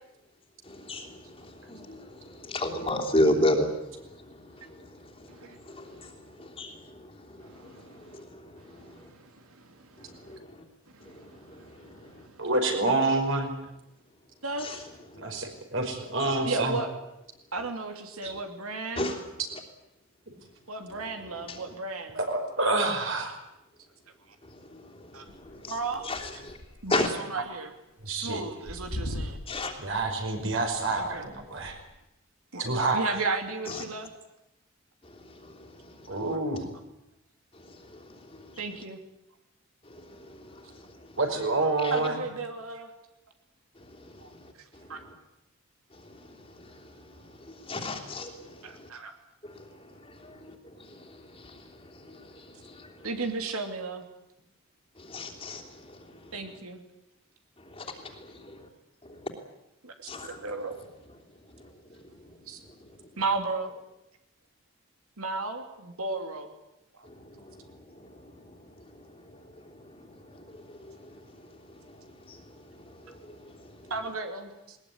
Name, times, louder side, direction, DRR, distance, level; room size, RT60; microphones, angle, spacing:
voice 1, 0.6-9.1 10.0-10.6 11.0-12.3 14.6-14.8 15.1-15.4 16.2-16.3 18.2-18.3 18.9-19.3 21.5-21.6 24.4-25.7 26.0-26.6 26.9-27.1 29.5-29.7 33.7-33.8 35.0-36.2 37.5-38.6 39.9-41.2 41.8-41.9 43.8-44.9 45.9-48.9 49.4-53.1 55.0-56.3 57.6-58.7 59.0-59.3 60.1-60.4 61.5-61.7 62.0-62.1 67.0-73.9, left 1 dB, 25° left, 1 dB, 3.2 m, -36 dB
voice 2, 7.4-8.2 8.6-10.4 10.9-12.4 14.4-14.9 16.4-17.0 17.5-19.2 20.7-22.2 24.3-24.4 25.1-25.2 25.6-26.1 26.8-27.7 28.0-29.4 30.9-31.3 32.5-32.6 32.9-34.1 38.6-39.0 41.9-42.9 44.2-45.0 48.6-49.1 53.0-54.0 56.3-56.8 59.8-60.8 62.5-62.6 63.2-63.7 65.2-66.5 66.9-67.1 73.9-74.8, right 3 dB, 80° right, 5 dB, 2.9 m, -35 dB
voice 3, 12.4-13.5 15.2-16.8 18.2-18.3 22.1-23.3 28.0-28.4 29.8-31.8 32.6-33.0 36.1-36.6 41.2-42.2, right 2 dB, 60° right, 4 dB, 5.3 m, -27 dB
sound 1, 25.3-27.2 27.5-27.6 28.0-28.1 28.6-32.0, left 1 dB, 80° left, 2.1 m, -40 dB
20.5 x 20.0 x 9.7 m, 0.90 s
head